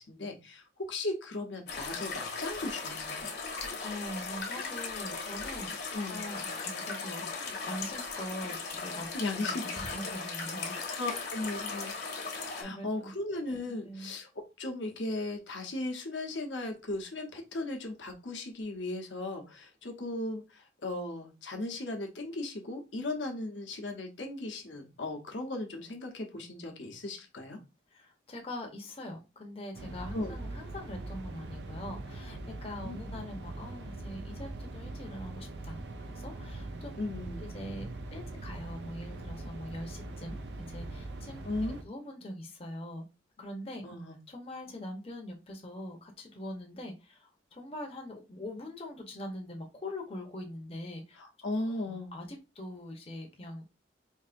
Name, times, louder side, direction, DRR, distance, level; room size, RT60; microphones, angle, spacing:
voice 1, 0.0-3.2 5.9-6.2 9.1-9.6 10.7-11.9 12.5-14.3 14.6-27.6 30.1-30.4 32.8-33.2 37.0-37.5 41.4-41.8 43.8-44.2 51.2-52.1, left 2 dB, 75° left, 2 dB, 0.9 m, -37 dB
sound 1, 1.7-12.6, left 4 dB, 55° left, 1.1 m, -38 dB
voice 2, 3.8-9.1 9.4-11.3 12.6-13.1 13.7-14.1 27.9-35.8 36.1-36.9 37.4-43.0 43.4-43.8 44.3-51.2 51.9-53.7, left 1 dB, 30° left, 3 dB, 0.8 m, -43 dB
sound 2, 29.7-41.8, right 2 dB, 65° right, 0.5 m, -42 dB
4.6 x 2.7 x 2.5 m, 0.27 s
head